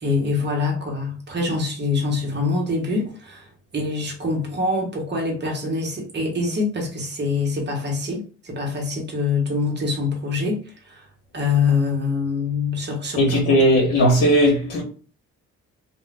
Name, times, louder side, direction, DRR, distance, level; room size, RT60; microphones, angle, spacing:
voice 1, 0.0-3.5 3.7-10.6 10.9-11.0 11.3-13.6, left 4 dB, 35° right, 1.2 m, -24 dB
voice 2, 13.2-14.8, equal, 55° left, 1.0 m, -17 dB
2.4 x 2.4 x 3.3 m
cardioid pair, 90°, 30 cm